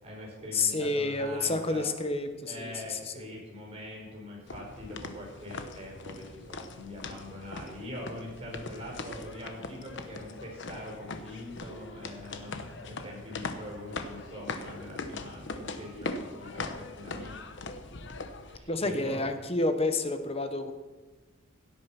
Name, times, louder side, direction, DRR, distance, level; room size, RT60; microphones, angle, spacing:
voice 1, 0.0-1.8 2.4-17.4 18.4-19.2, left 1 dB, 30° right, -3 dB, 5.4 m, -43 dB
voice 2, 0.5-3.2 18.7-20.7, left 2 dB, 30° left, 8 dB, 1.1 m, -29 dB
sound 1, 4.5-18.6, left 3 dB, 60° left, 1.1 m, -41 dB
16.5 x 8.6 x 6.1 m, 1.2 s
head